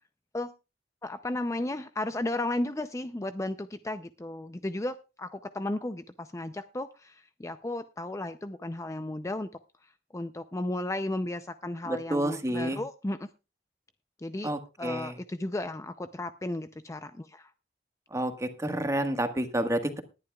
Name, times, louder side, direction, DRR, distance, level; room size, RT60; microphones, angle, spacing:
voice 1, 1.0-9.5 10.1-13.3 14.2-14.5 14.8-17.5, left 1 dB, 15° left, 10 dB, 0.5 m, -34 dB
voice 2, 11.9-12.8 14.4-15.1 18.1-20.0, right 1 dB, 20° right, 7 dB, 1.5 m, -29 dB
19.5 x 11.0 x 2.3 m, 0.29 s
head